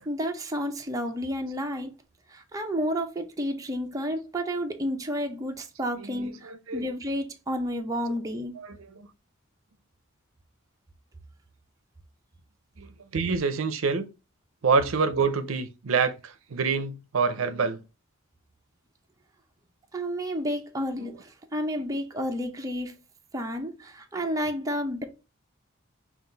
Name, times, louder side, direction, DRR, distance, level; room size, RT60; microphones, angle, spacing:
voice 1, 0.1-2.0 2.3-8.5 19.9-23.0 23.3-25.0, equal, 15° right, 0.6 m, -31 dB
voice 2, 6.0-6.8 8.5-9.0 12.8-14.0 14.6-17.8 21.0-21.1, right 5 dB, 75° right, 0.5 m, -27 dB
5.6 x 2.4 x 3.9 m
head